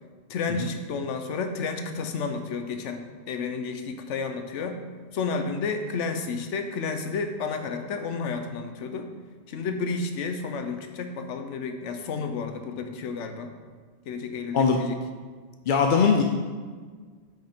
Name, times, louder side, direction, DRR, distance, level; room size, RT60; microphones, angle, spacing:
voice 1, 0.3-4.8 5.1-9.1 9.5-13.5 14.1-15.0, left 4 dB, 85° left, 6 dB, 1.0 m, -31 dB
voice 2, 15.7-16.2, left 6 dB, 55° left, 2 dB, 0.6 m, -20 dB
5.8 x 5.4 x 5.0 m, 1.6 s
omnidirectional pair, 1.2 m